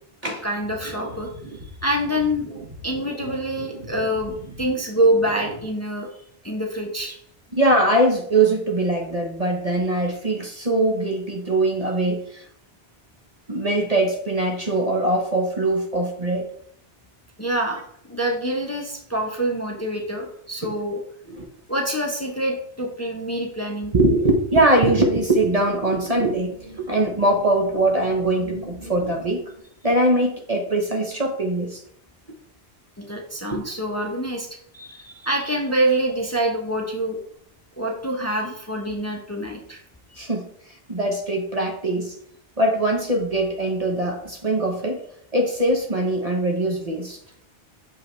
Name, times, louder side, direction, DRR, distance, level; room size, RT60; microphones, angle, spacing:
voice 1, 0.2-2.4 2.8-4.3 4.6-6.1 6.4-7.2 17.4-21.0 21.7-23.9 33.0-34.5 34.7-37.2 37.8-39.8 40.1-40.2, right 1 dB, 15° left, 1 dB, 0.9 m, -26 dB
sound 1, 0.6-5.6, right 2 dB, 55° right, 2.0 m, -40 dB
voice 2, 7.5-12.5 13.5-16.5 21.3-21.5 23.9-26.5 26.8-29.4 29.8-31.8 33.5-33.6 40.2-40.5 40.9-42.1 42.6-45.0 45.3-47.2, right 1 dB, 35° right, 2 dB, 1.0 m, -22 dB
sound 2, 24.6-29.6, right 1 dB, 75° right, 2.7 m, -42 dB
6.9 x 5.5 x 3.2 m, 0.66 s
omnidirectional pair, 1.1 m